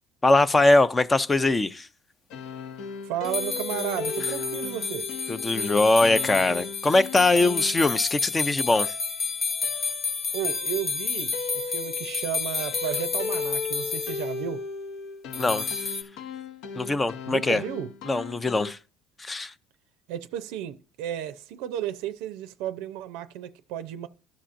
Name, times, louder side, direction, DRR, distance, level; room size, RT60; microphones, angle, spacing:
voice 1, 0.2-1.9 5.3-8.9 15.3-15.8 16.8-17.6 18.0-18.8 19.2-19.5, left 2 dB, 15° left, 0.4 m, -22 dB
sound 1, 2.3-18.7, left 4 dB, 70° left, 0.7 m, -37 dB
voice 2, 3.1-5.1 10.3-14.6 17.3-17.9 20.1-24.1, right 11 dB, 85° right, 0.5 m, -33 dB
sound 2, 3.2-14.3 15.3-16.0, left 5 dB, 35° left, 0.7 m, -31 dB
14.0 x 5.7 x 2.5 m
cardioid pair, 140°, 0 cm